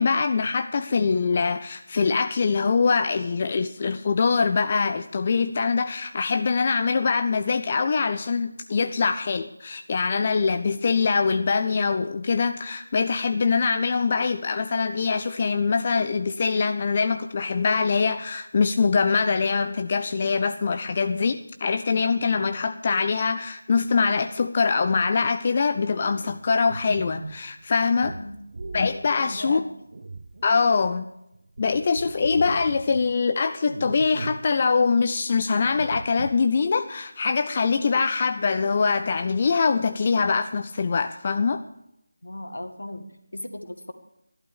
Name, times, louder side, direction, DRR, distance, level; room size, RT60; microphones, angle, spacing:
voice 1, 0.0-28.1 28.7-29.6 30.4-31.1 31.6-41.6, left 5 dB, 30° left, 9 dB, 0.4 m, -23 dB
sound 1, 26.0-31.0 31.3-33.2 33.7-34.5 34.8-34.9 35.6-36.5, right 3 dB, 45° right, 0.9 m, -39 dB
voice 2, 28.1-28.4 29.3-29.7 42.2-43.9, left 1 dB, 65° left, 8 dB, 1.8 m, -36 dB
15.5 x 11.5 x 6.9 m, 0.83 s
figure-of-eight pair, 165°, 0 cm